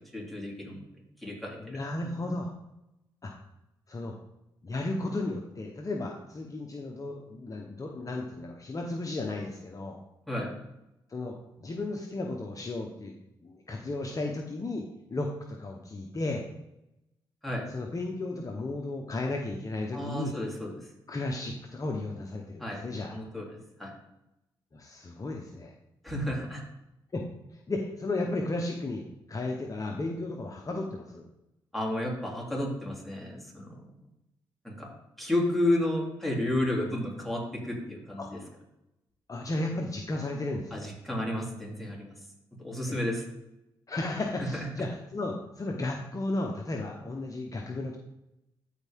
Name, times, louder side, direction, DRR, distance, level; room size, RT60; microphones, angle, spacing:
voice 1, 0.1-0.8 1.2-1.8 10.3-10.5 17.4-17.7 19.9-20.8 22.6-22.8 23.1-23.9 26.0-26.6 31.7-33.8 34.6-34.9 35.2-38.4 40.7-42.1 42.6-43.2, left 1 dB, ahead, -3 dB, 3.3 m, -31 dB
voice 2, 1.6-2.5 3.2-3.3 3.9-4.2 4.6-10.0 11.1-13.1 13.4-16.5 17.7-20.3 21.1-23.1 24.7-25.7 27.1-27.2 27.7-31.3 38.2-38.3 39.3-40.9 42.9-43.0 43.9-48.0, left 2 dB, 35° left, 1 dB, 1.0 m, -34 dB
13.0 x 4.6 x 3.7 m, 0.89 s
supercardioid pair, 60°, 10 cm